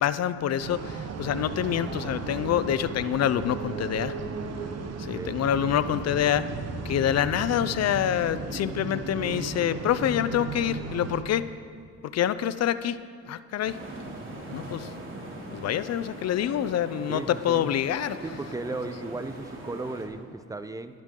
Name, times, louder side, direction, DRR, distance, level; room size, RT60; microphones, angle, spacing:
voice 1, 0.0-4.2 5.0-6.5 6.8-11.5 12.0-13.0 13.3-13.8 14.5-14.9 15.5-18.2, left 10 dB, 60° left, 14 dB, 0.5 m, -26 dB
sound 1, 0.6-11.2, right 4 dB, 60° right, 1.1 m, -35 dB
sound 2, 13.6-20.1, right 1 dB, 40° right, 2.8 m, -41 dB
voice 2, 17.1-17.7 18.2-21.0, right 2 dB, 10° right, 10 dB, 0.6 m, -36 dB
15.5 x 11.5 x 3.7 m, 2.2 s
cardioid pair, 90°, 30 cm